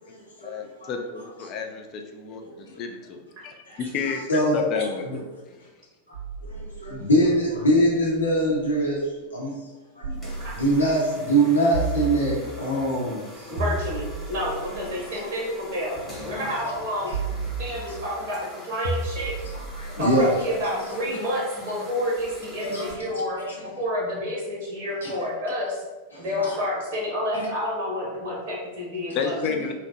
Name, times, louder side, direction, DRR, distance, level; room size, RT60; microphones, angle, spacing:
voice 1, 0.4-4.2 4.5-5.0 29.1-29.7, left 5 dB, 35° left, 4 dB, 0.3 m, -30 dB
voice 2, 4.1-4.6 5.1-5.2 6.4-9.0 9.3-9.5 10.0-10.2 10.5-13.5 14.7-14.8 15.1-15.3 16.3-16.5 19.5-20.3 22.6-22.9 25.0-25.1 26.1-26.5 27.3-27.4, right 1 dB, 75° left, -4 dB, 0.8 m, -23 dB
sound 1, 6.1-8.9 10.0-11.1 11.7-12.8 13.6-15.8 17.1-18.2 18.8-21.0, right 3 dB, 60° right, 0.4 m, -34 dB
sound 2, 10.1-22.9, left 1 dB, 10° left, 1.0 m, -44 dB
voice 3, 13.5-15.9 16.2-17.2 17.6-19.3 20.0-25.8 26.2-29.4, left 1 dB, 45° right, -5 dB, 0.7 m, -29 dB
2.7 x 2.1 x 2.7 m, 1.2 s
figure-of-eight pair, 90°, 0 cm